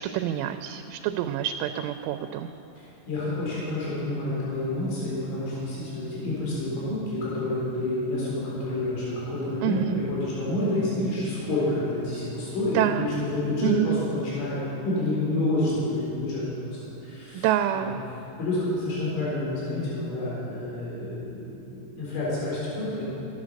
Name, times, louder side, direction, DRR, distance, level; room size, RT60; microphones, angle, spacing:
voice 1, 0.0-2.5 9.6-10.1 12.7-13.1 13.6-14.0 17.3-18.0, right 11 dB, 85° right, 7 dB, 2.9 m, -27 dB
voice 2, 3.1-14.6 14.8-17.5 17.7-17.9 18.4-23.0, left 1 dB, 75° left, -7 dB, 6.5 m, -29 dB
14.0 x 11.5 x 6.5 m, 2.9 s
omnidirectional pair, 5.7 m